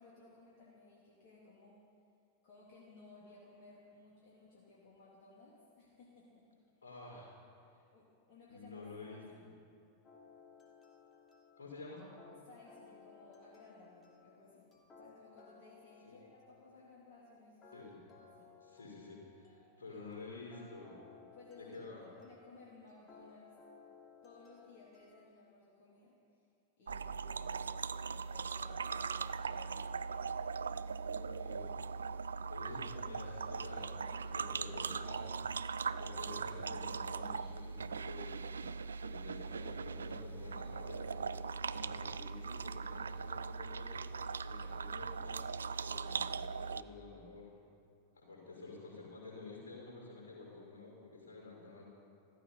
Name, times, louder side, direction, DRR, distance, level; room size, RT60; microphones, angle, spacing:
voice 1, 0.0-1.8 2.4-6.5 7.9-9.6 12.4-14.7 15.0-17.8 18.2-18.5 19.9-20.1 21.2-21.8 22.2-23.6 24.2-26.5 26.8-30.1, left 3 dB, 45° left, -5 dB, 2.8 m, -59 dB
voice 2, 6.8-7.3 8.5-9.2 11.6-12.0 16.0-16.2 17.7-18.0 18.7-20.9 21.5-22.0 31.0-31.8 32.5-47.5 48.2-51.8, left 3 dB, 70° left, -3 dB, 4.8 m, -50 dB
sound 1, 10.0-25.3, left 4 dB, 25° left, 2.8 m, -61 dB
sound 2, 26.9-46.8, right 5 dB, 70° right, 0.3 m, -40 dB
15.0 x 15.0 x 5.5 m, 2.5 s
figure-of-eight pair, 90°, 0 cm